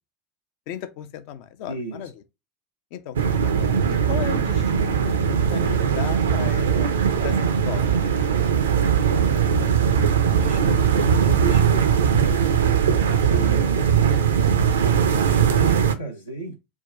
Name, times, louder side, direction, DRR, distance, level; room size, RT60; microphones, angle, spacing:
voice 1, 0.7-2.2 2.9-6.9 7.2-9.0, left 9 dB, 50° left, 0.6 m, -36 dB
voice 2, 1.7-2.1 9.5-9.8 10.3-12.2 13.1-14.2 15.0-16.6, right 3 dB, 80° left, 0.8 m, -32 dB
sound 1, 3.1-15.9, right 7 dB, 70° right, 0.5 m, -20 dB
3.7 x 2.3 x 3.4 m
figure-of-eight pair, 80°, 0 cm